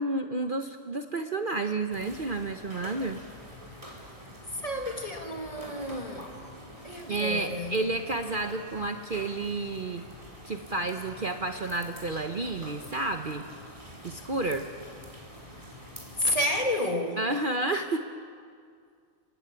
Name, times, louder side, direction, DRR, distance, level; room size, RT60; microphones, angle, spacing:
voice 1, 0.0-3.2 7.1-10.0 10.5-13.4 14.0-14.7 17.2-18.0, right 2 dB, 40° right, 1.1 m, -30 dB
sound 1, 1.9-16.7, equal, 25° right, 4.4 m, -46 dB
voice 2, 4.5-6.5 6.8-7.9 16.2-17.2, left 1 dB, 25° left, 2.2 m, -31 dB
28.5 x 16.0 x 9.7 m
omnidirectional pair, 1.4 m